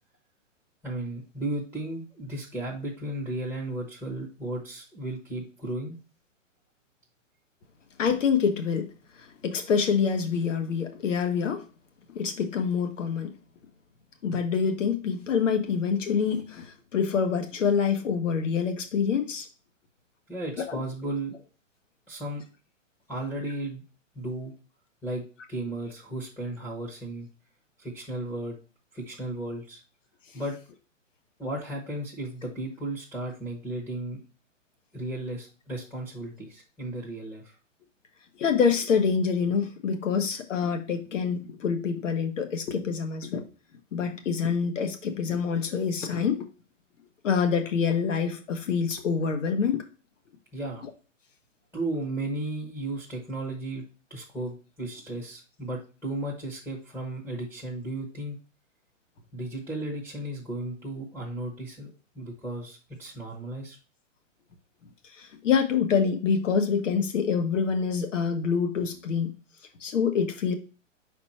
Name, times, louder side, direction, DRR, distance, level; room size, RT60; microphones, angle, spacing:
voice 1, 0.8-6.0 20.3-21.4 22.1-22.4 23.1-23.8 24.1-24.5 25.0-27.3 27.8-28.5 28.9-29.8 30.3-30.6 31.4-34.2 34.9-37.5 50.5-50.9 51.7-53.8 54.1-58.4 59.3-63.8, right 1 dB, 5° left, -5 dB, 0.9 m, -34 dB
voice 2, 8.0-8.9 9.4-11.6 12.1-13.3 14.2-19.5 20.7-20.8 38.4-43.4 43.9-46.5 47.2-49.8 65.2-69.3 69.8-70.6, left 6 dB, 70° left, 6 dB, 1.4 m, -26 dB
5.5 x 4.3 x 4.2 m, 0.34 s
hypercardioid pair, 160°, 39 cm